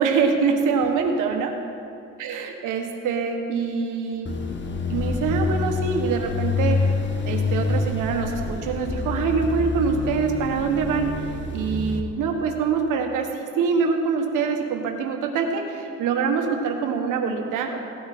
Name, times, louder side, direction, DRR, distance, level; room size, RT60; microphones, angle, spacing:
voice 1, 0.0-1.6 2.2-4.4 4.9-7.0 7.2-11.3 11.5-17.8, right 5 dB, 90° right, 3 dB, 1.4 m, -24 dB
sound 1, 4.3-12.0, left 4 dB, 40° left, 1.1 m, -27 dB
17.0 x 9.6 x 4.2 m, 2.6 s
cardioid pair, 90°, 30 cm